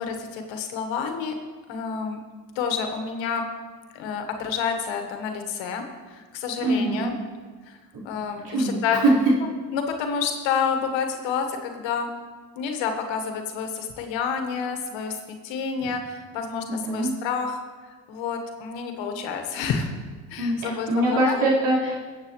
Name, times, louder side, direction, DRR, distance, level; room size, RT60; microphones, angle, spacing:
voice 1, 0.0-1.4 1.7-2.2 2.5-3.4 3.9-7.1 7.7-7.8 8.0-9.2 9.7-12.1 12.5-15.2 15.4-17.6 18.1-19.9 20.3-21.4, left 6 dB, 70° left, 5 dB, 1.6 m, -29 dB
voice 2, 6.6-7.1 8.4-8.8 16.7-17.1 20.4-22.0, right 1 dB, 65° right, -6 dB, 4.5 m, -24 dB
22.5 x 8.0 x 3.2 m, 1.4 s
hypercardioid pair, 50°, 46 cm